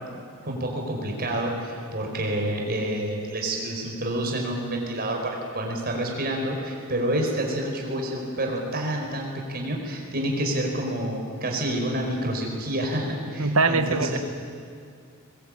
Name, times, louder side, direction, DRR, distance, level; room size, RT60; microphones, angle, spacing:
voice 1, 0.4-14.2, right 1 dB, 45° right, 1 dB, 5.1 m, -28 dB
voice 2, 13.4-14.2, right 3 dB, 70° right, 8 dB, 1.5 m, -22 dB
21.5 x 21.5 x 8.9 m, 2.3 s
head